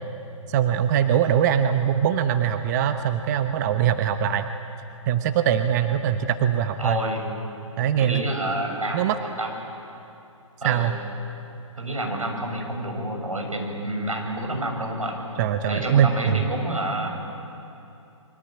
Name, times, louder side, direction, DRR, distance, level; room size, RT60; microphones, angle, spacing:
voice 1, 0.5-4.4 5.1-7.0 7.8-8.2 8.9-9.2 10.6-11.0 15.4-16.4, right 9 dB, 30° right, 8 dB, 1.0 m, -22 dB
voice 2, 6.8-7.3 8.0-9.5 10.6-10.9 11.8-15.2 15.7-17.1, right 1 dB, 85° right, 2 dB, 7.0 m, -28 dB
28.0 x 24.0 x 8.9 m, 2.7 s
figure-of-eight pair, 135°, 17 cm